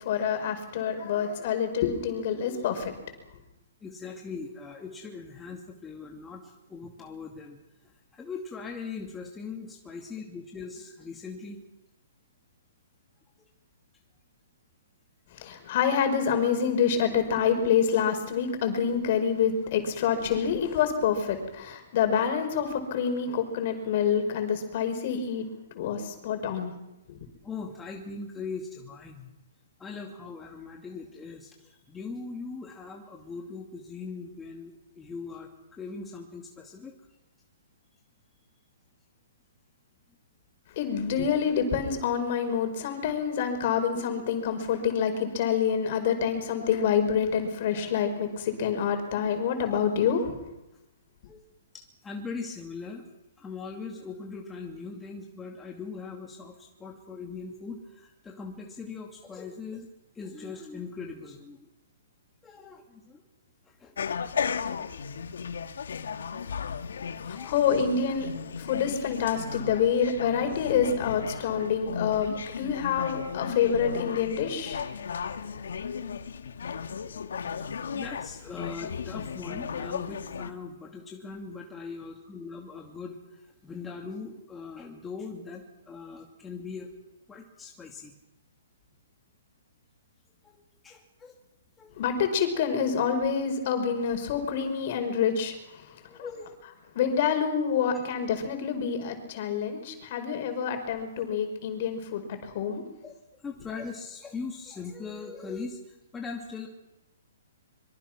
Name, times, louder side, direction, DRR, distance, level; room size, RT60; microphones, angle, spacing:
voice 1, 0.0-2.9 15.4-25.5 25.7-26.7 27.1-27.2 40.8-50.4 67.3-68.3 68.6-74.8 92.0-96.0 96.9-102.8, left 7 dB, 45° left, 7 dB, 5.2 m, -27 dB
voice 2, 3.8-7.6 8.1-11.6 27.4-29.3 29.8-36.9 51.3-51.4 51.7-53.0 53.4-59.9 60.1-61.7 62.4-63.2 63.6-64.1 67.3-67.6 76.3-76.4 77.4-86.9 87.3-88.1 90.4-91.4 91.8-91.9 96.1-96.5 103.0-106.7, left 4 dB, 10° left, 0 dB, 2.6 m, -40 dB
sound 1, 64.0-80.5, left 6 dB, 75° left, 1.8 m, -35 dB
25.0 x 24.0 x 6.2 m, 0.94 s
hypercardioid pair, 150°, 0 cm